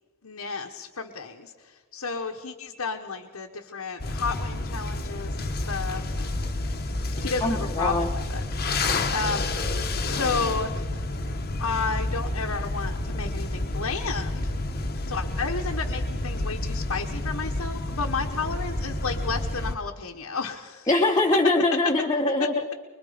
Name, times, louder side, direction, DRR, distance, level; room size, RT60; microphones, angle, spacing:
voice 1, 0.2-6.4 7.2-9.4 10.0-11.1 11.6-20.9 22.4-22.5, left 4 dB, 80° left, 1 dB, 1.3 m, -32 dB
sound 1, 4.0-19.7, left 2 dB, 45° left, 1.1 m, -29 dB
voice 2, 7.4-8.1 20.9-22.6, left 2 dB, 20° left, -1 dB, 1.2 m, -22 dB
25.0 x 21.5 x 5.1 m, 1.4 s
head